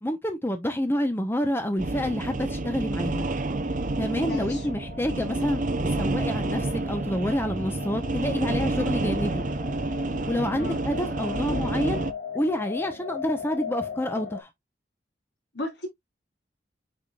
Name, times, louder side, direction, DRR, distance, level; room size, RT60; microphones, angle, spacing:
voice 1, 0.0-3.3 4.0-5.6 5.9-9.4 10.3-12.0 12.3-14.5, equal, 15° left, 1.0 m, -28 dB
sound 1, 1.8-12.1, right 2 dB, 50° right, 0.9 m, -29 dB
sound 2, 3.5-14.4, left 6 dB, 50° left, 3.0 m, -39 dB
voice 2, 4.2-4.7 10.5-10.8 15.5-15.9, left 2 dB, 70° left, 4.7 m, -34 dB
8.7 x 5.1 x 2.5 m
head